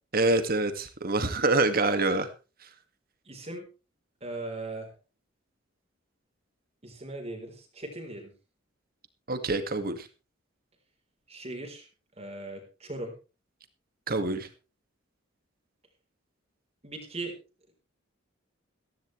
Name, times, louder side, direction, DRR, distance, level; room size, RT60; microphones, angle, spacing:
voice 1, 0.1-2.3 9.3-10.1 14.1-14.5, right 2 dB, 50° right, 9 dB, 2.0 m, -26 dB
voice 2, 3.3-3.7 4.2-4.9 6.8-8.3 11.3-11.9 12.2-13.1 16.8-17.3, right 2 dB, 35° right, 3 dB, 4.1 m, -38 dB
15.5 x 15.0 x 3.3 m, 0.32 s
head